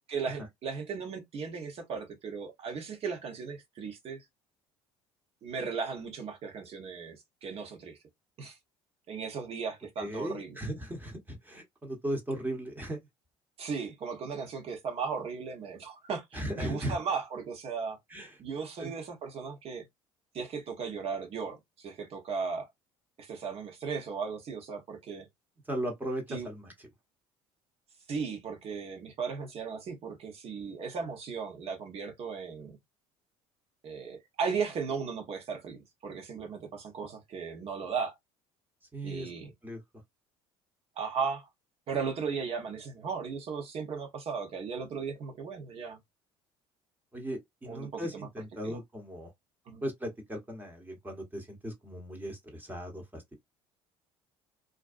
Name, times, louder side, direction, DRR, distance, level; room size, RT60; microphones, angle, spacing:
voice 1, 0.1-4.2 5.4-8.0 8.4-8.6 9.1-10.6 13.6-18.0 18.4-19.8 20.3-22.7 23.2-25.3 26.3-26.5 28.1-32.8 33.8-38.1 39.0-39.5 41.0-41.5 41.9-46.0 47.7-48.3 48.6-48.8 49.7-49.8, right 5 dB, 50° right, 1.1 m, -36 dB
voice 2, 10.0-13.0 16.3-17.0 18.1-18.4 18.8-18.9 25.7-26.9 38.9-39.3 39.6-39.8 47.1-49.3 49.8-53.4, right 1 dB, 15° right, 1.0 m, -37 dB
2.5 x 2.2 x 2.5 m
hypercardioid pair, 70°, 13 cm